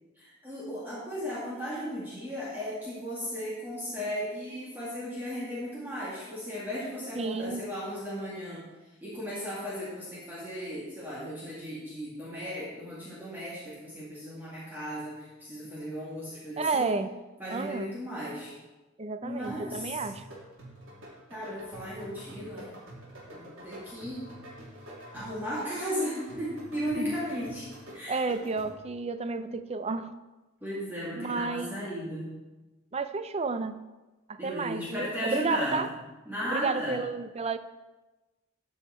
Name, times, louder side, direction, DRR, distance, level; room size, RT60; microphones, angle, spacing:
voice 1, 0.2-8.6 9.0-17.0 17.4-18.5 19.2-20.1 21.3-22.7 23.3-24.3 25.1-27.7 27.9-28.3 30.6-32.3 34.4-35.8 36.3-37.0, equal, 10° right, -8 dB, 2.2 m, -36 dB
voice 2, 7.2-7.6 16.6-17.1 17.5-17.9 19.0-20.3 27.0-27.2 28.1-30.1 31.2-31.8 32.9-33.8 34.3-35.9 36.5-37.6, right 4 dB, 30° right, 11 dB, 0.5 m, -31 dB
sound 1, 19.4-29.0, right 1 dB, 80° right, 3.1 m, -47 dB
13.0 x 5.7 x 4.3 m, 1.1 s
head